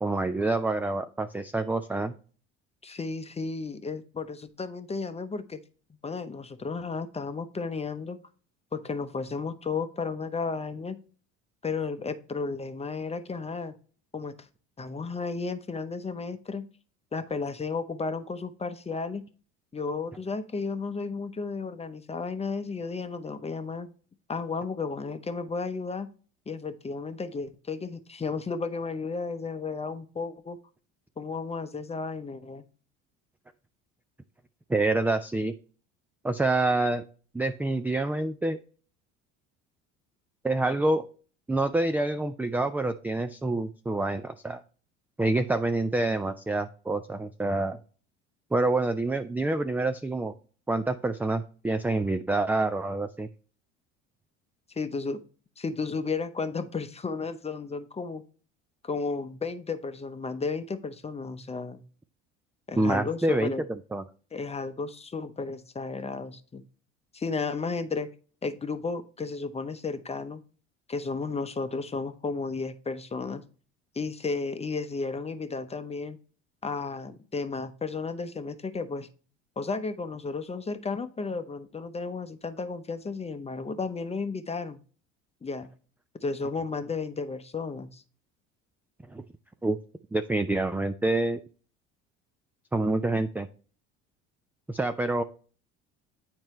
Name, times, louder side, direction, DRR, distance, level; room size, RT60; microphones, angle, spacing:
voice 1, 0.0-2.1 34.7-35.5 36.2-37.0 37.3-38.6 40.4-41.1 41.5-44.6 45.2-47.8 48.5-50.3 50.7-53.3 62.8-63.5 63.9-64.0 89.1-89.2 89.6-89.8 90.1-91.4 92.7-93.5 94.7-95.2, right 2 dB, 5° right, 9 dB, 0.3 m, -27 dB
voice 2, 2.8-5.6 6.0-8.2 8.7-11.0 11.6-13.7 14.1-14.3 14.8-16.6 17.1-19.2 19.7-23.9 24.3-26.1 26.5-30.6 31.2-32.6 54.8-55.2 55.6-58.2 58.8-61.8 62.7-63.6 64.3-66.6 67.1-68.1 68.4-70.4 70.9-73.4 73.9-76.2 76.6-79.1 79.6-84.8 85.4-85.7 86.2-88.0, left 4 dB, 15° left, 11 dB, 0.8 m, -33 dB
8.9 x 4.4 x 3.1 m, 0.40 s
hypercardioid pair, 70°, 36 cm